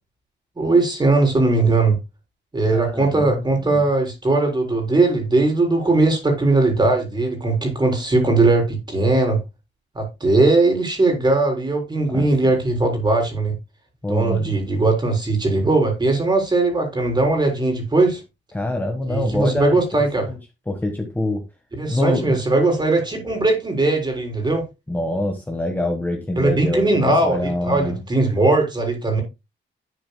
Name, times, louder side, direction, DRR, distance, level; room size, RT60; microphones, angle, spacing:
voice 1, 0.6-2.0 2.5-9.4 10.0-13.5 14.1-18.2 19.1-20.3 21.8-24.6 26.4-29.2, right 2 dB, 20° right, 3.8 m, -19 dB
voice 2, 2.6-3.8 12.1-12.3 14.0-14.5 18.5-19.8 20.2-20.4 20.7-21.4 21.9-22.4 24.9-28.0, left 1 dB, 10° left, 1.3 m, -25 dB
11.0 x 9.1 x 2.2 m
wide cardioid pair, 155°, 20 cm